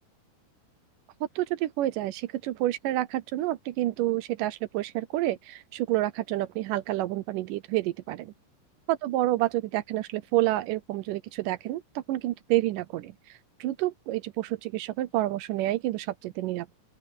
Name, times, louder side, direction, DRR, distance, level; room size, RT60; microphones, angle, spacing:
voice 1, 1.4-8.3 8.9-16.7, right 15 dB, 80° right, 2.0 m, -29 dB
open air
omnidirectional pair, 4.5 m